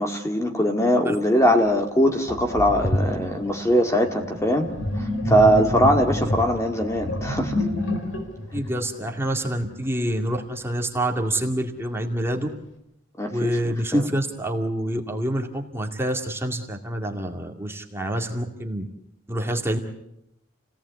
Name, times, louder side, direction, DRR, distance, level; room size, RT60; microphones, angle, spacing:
voice 1, 0.0-4.7 5.3-7.6 13.2-13.5 13.9-14.0, equal, 15° left, 3 dB, 2.0 m, -21 dB
Sink (filling or washing), 1.6-1.7 2.3-9.6, left 1 dB, 90° left, 4.7 m, -28 dB
voice 2, 8.5-12.5 13.3-18.9 19.3-19.8, right 1 dB, 15° right, 1 dB, 2.1 m, -27 dB
29.0 x 17.5 x 8.3 m, 0.81 s
head